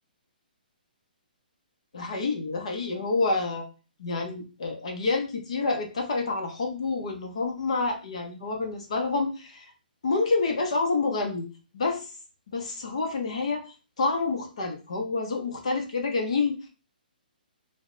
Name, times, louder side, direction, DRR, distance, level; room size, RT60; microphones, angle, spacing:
voice 1, 1.9-3.6 4.0-9.7 10.0-11.5 11.7-12.1 12.5-16.7, left 3 dB, 40° left, 2 dB, 0.6 m, -28 dB
3.2 x 2.0 x 3.8 m, 0.33 s
hypercardioid pair, 180°, 5 cm